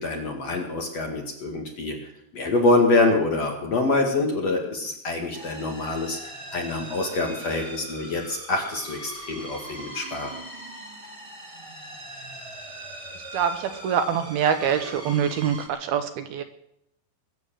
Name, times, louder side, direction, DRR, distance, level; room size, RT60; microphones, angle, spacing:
voice 1, 0.0-2.0 2.3-6.2 6.5-10.3, left 2 dB, 45° left, 1 dB, 2.5 m, -25 dB
sound 1, 5.3-15.7, right 1 dB, 15° right, 1.3 m, -40 dB
voice 2, 13.3-16.4, right 8 dB, 75° right, 8 dB, 2.6 m, -25 dB
22.5 x 7.9 x 7.6 m, 0.79 s
omnidirectional pair, 5.0 m